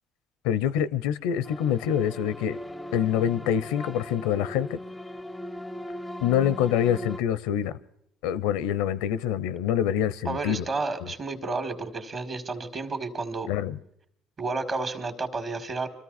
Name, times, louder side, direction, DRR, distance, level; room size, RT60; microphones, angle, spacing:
voice 1, 0.4-2.6 2.9-4.8 6.2-7.8 8.2-10.6 11.0-11.1 13.5-13.8, left 9 dB, 80° left, 0.5 m, -26 dB
sound 1, 1.4-7.2, left 1 dB, 10° left, 0.5 m, -39 dB
voice 2, 10.3-13.5 14.4-15.9, right 3 dB, 45° right, 2.1 m, -31 dB
25.0 x 13.5 x 4.1 m
hypercardioid pair, 65°, 0 cm